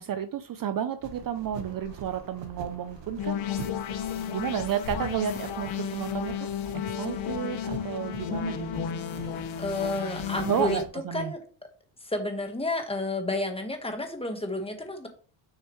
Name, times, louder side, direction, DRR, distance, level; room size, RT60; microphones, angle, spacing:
voice 1, 0.0-3.4 4.2-6.5 7.0-8.7 10.4-11.3, right 9 dB, 45° right, 10 dB, 0.5 m, -31 dB
sound 1, 1.0-10.9, right 6 dB, 65° right, 1.2 m, -45 dB
sound 2, 1.5-7.2, left 2 dB, 55° left, 2.4 m, -47 dB
sound 3, 3.2-10.8, left 9 dB, 75° left, 0.9 m, -33 dB
voice 2, 9.6-10.8 11.1-11.4 12.0-15.1, left 2 dB, 10° left, 5 dB, 1.2 m, -31 dB
6.5 x 6.5 x 3.0 m, 0.39 s
cardioid pair, 135°, 47 cm